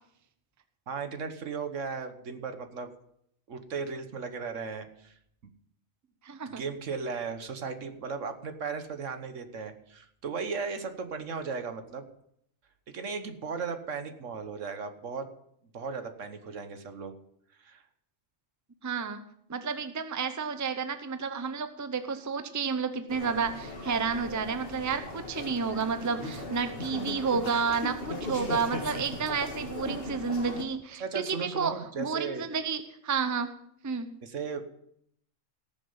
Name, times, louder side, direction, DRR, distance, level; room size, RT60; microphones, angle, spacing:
voice 1, 0.9-2.9 3.5-5.1 6.5-12.0 12.9-15.3 15.7-17.1 17.6-17.8 26.9-27.0 31.0-32.4 34.2-34.6, right 5 dB, 70° right, 8 dB, 1.5 m, -36 dB
voice 2, 6.2-6.6 18.8-19.2 19.5-33.5 33.8-34.1, right 5 dB, 20° right, 9 dB, 0.6 m, -31 dB
sound 1, 23.1-30.6, left 2 dB, 45° left, 2.3 m, -38 dB
18.0 x 7.0 x 5.6 m, 0.71 s
omnidirectional pair, 1.3 m